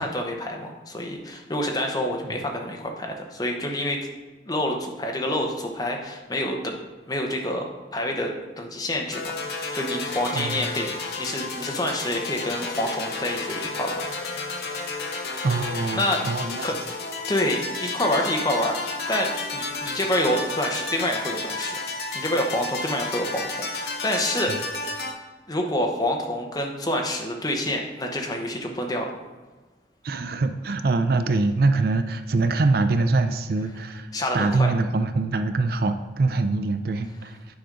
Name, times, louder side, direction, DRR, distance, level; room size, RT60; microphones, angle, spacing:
voice 1, 0.0-4.0 4.5-6.7 7.1-14.1 14.3-14.5 15.9-16.2 16.6-16.7 17.3-21.7 22.1-24.5 25.5-29.1 34.1-34.7, left 1 dB, 20° left, 1 dB, 0.9 m, -27 dB
sound 1, 9.1-25.1, left 3 dB, 60° left, 0.9 m, -32 dB
voice 2, 10.3-10.6 15.4-16.7 24.5-24.6 30.0-37.4, right 3 dB, 55° right, 9 dB, 0.4 m, -24 dB
9.4 x 5.0 x 3.8 m, 1.3 s
head